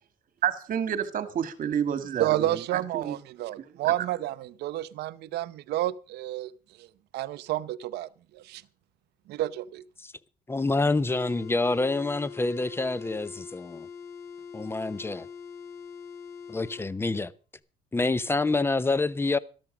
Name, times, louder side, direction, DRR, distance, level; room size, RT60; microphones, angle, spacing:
voice 1, 0.4-3.2, right 8 dB, 55° right, 1.8 m, -29 dB
voice 2, 2.2-6.5 6.8-6.9 7.1-8.6 9.3-9.8, right 14 dB, 75° right, 0.7 m, -30 dB
voice 3, 10.5-13.9 14.5-15.3 16.5-17.3 17.9-19.4, left 3 dB, 15° left, 0.7 m, -27 dB
sound 1, 11.1-16.9, left 6 dB, 75° left, 4.6 m, -43 dB
13.0 x 12.5 x 5.0 m
cardioid pair, 110°, 17 cm